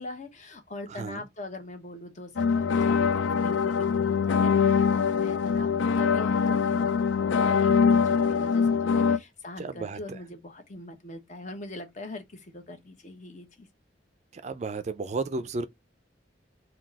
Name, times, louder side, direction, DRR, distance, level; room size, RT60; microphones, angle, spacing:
voice 1, 0.0-13.7, left 1 dB, 40° left, 1.1 m, -42 dB
voice 2, 0.9-1.2 9.6-10.2 14.3-15.6, right 3 dB, 40° right, 0.4 m, -33 dB
sound 1, 2.4-9.2, left 6 dB, 85° left, 0.4 m, -23 dB
3.9 x 2.3 x 4.6 m
head